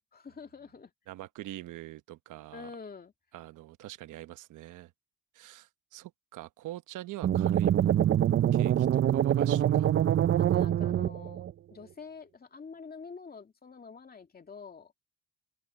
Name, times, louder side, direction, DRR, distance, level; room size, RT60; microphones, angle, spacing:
voice 1, 0.0-0.9 2.5-3.1 9.4-9.9 10.4-14.9, left 5 dB, 30° left, 2.2 m, -47 dB
voice 2, 1.1-2.7 3.3-4.9 5.3-8.1 8.5-9.9, right 15 dB, 85° right, 1.0 m, -44 dB
sound 1, 7.2-11.5, right 11 dB, 45° right, 0.5 m, -25 dB
open air
cardioid pair, 90°, 30 cm